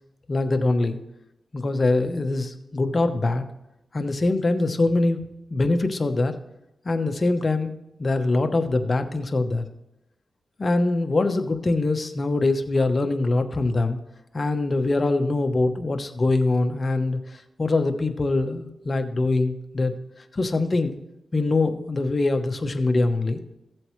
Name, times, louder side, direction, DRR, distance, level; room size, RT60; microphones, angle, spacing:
voice 1, 0.3-1.0 1.5-3.4 3.9-5.2 5.5-6.3 6.8-7.7 8.0-9.6 10.6-14.0 14.3-17.2 17.6-19.9 20.3-21.0 21.3-23.4, left 2 dB, 40° left, 7 dB, 1.0 m, -23 dB
15.0 x 7.6 x 3.2 m, 0.87 s
cardioid pair, 65°, 0 cm